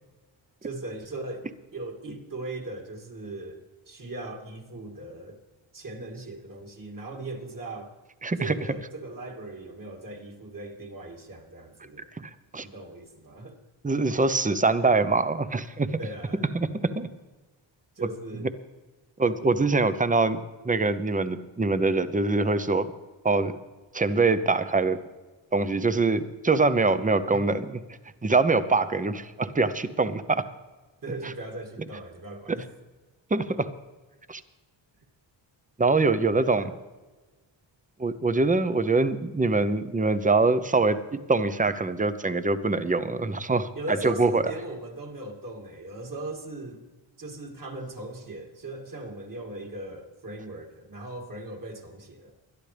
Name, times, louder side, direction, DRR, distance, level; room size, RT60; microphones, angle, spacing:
voice 1, 0.6-1.5 1.7-3.6 3.9-5.4 5.7-7.9 8.4-12.1 12.6-13.6 16.0-16.6 18.0-18.5 27.3-27.5 31.0-32.7 36.3-36.7 43.7-46.8 47.2-52.3, right 2 dB, 45° right, 1 dB, 2.5 m, -38 dB
voice 2, 8.2-8.6 12.2-12.7 13.8-15.9 16.5-17.1 18.0-18.1 18.4-18.5 19.2-22.9 23.2-23.6 23.9-25.0 25.5-27.8 28.2-30.4 32.5-32.6 33.3-33.7 34.3-34.4 35.8-36.7 38.0-43.7 44.0-44.4, right 3 dB, 15° right, 12 dB, 0.7 m, -24 dB
21.0 x 11.5 x 3.4 m, 1.2 s
wide cardioid pair, 100°, 48 cm